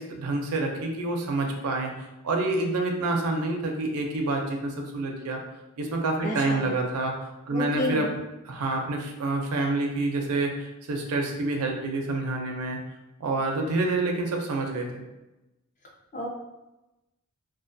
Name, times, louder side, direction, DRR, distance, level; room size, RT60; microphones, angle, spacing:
voice 1, 0.0-1.9 2.2-5.4 5.8-7.2 7.5-8.1 8.5-12.8 13.2-15.0, right 2 dB, 75° right, 2 dB, 0.4 m, -27 dB
voice 2, 6.2-6.7 7.5-8.0 16.1-16.3, left 1 dB, 35° left, -2 dB, 0.5 m, -30 dB
2.3 x 2.2 x 2.5 m, 0.98 s
head